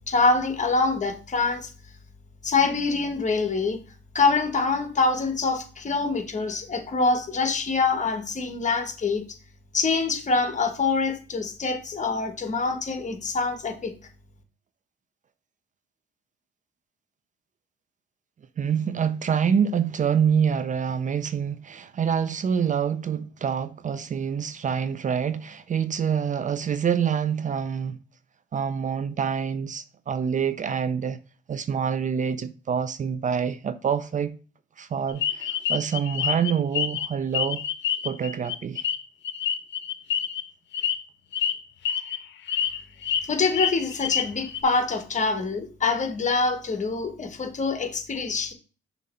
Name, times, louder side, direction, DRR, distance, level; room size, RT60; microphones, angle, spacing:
voice 1, 0.1-1.7 2.4-3.8 4.1-9.2 9.7-13.9 43.2-48.5, left 4 dB, 35° left, 1.3 m, -25 dB
voice 2, 18.6-28.0 28.5-31.2 31.5-34.3 34.8-37.6 38.0-38.8, right 7 dB, 40° right, 0.5 m, -26 dB
sound 1, 35.2-37.1 37.3-40.4 40.7-40.9 41.3-41.5 41.8-42.2 42.5-43.2 43.5-44.6, left 9 dB, 70° left, 0.7 m, -27 dB
6.4 x 3.0 x 5.4 m
cardioid pair, 90°, 20 cm